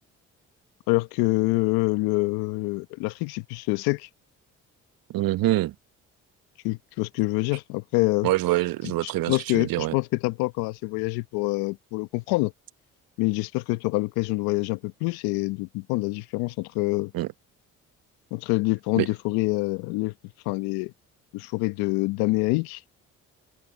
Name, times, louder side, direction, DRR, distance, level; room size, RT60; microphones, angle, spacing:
voice 1, 0.9-4.1 6.6-8.3 9.0-12.5 13.2-17.1 18.3-20.1 20.4-20.9 21.3-22.8, left 23 dB, 80° left, 1.2 m, -26 dB
voice 2, 5.1-5.7 8.2-9.9 17.1-17.3 19.0-19.1, right 16 dB, 65° right, 1.1 m, -25 dB
hypercardioid pair, 50°, 37 cm